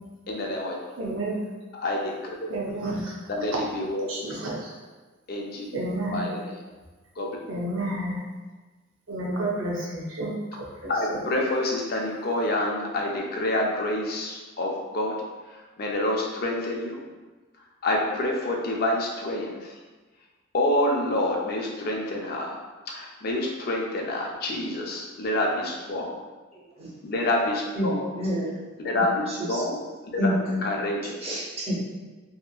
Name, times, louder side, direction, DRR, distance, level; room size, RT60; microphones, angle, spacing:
voice 1, 0.3-0.8 1.8-2.3 3.4-4.1 5.3-5.7 6.1-6.6 7.2-7.3 10.9-15.2 15.5-17.0 17.8-19.7 20.5-22.6 22.9-26.2 27.0-28.0 28.8-29.8 30.1-30.2 30.6-31.1, left 1 dB, 45° left, -1 dB, 0.4 m, -27 dB
voice 2, 1.0-1.4 2.5-3.1 4.1-4.7 5.7-6.3 7.5-8.2 9.1-11.2, right 1 dB, 70° right, -3 dB, 0.5 m, -31 dB
voice 3, 26.5-26.9 27.8-28.6 29.3-29.6 30.2-30.7 31.2-31.8, equal, 30° right, -7 dB, 0.7 m, -28 dB
2.7 x 2.4 x 2.3 m, 1.3 s
head